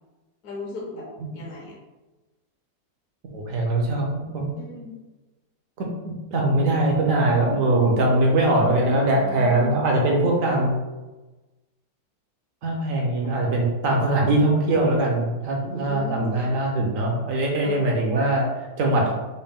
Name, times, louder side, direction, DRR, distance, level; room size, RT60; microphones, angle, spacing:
voice 1, 0.4-1.0 1.3-1.7 4.6-4.9 9.1-9.8 15.6-16.5 17.6-17.8, left 3 dB, 65° left, -4 dB, 1.1 m, -36 dB
voice 2, 3.3-4.5 5.8-10.8 12.6-19.1, right 2 dB, 65° right, -1 dB, 0.8 m, -22 dB
4.1 x 2.1 x 3.5 m, 1.1 s
omnidirectional pair, 2.0 m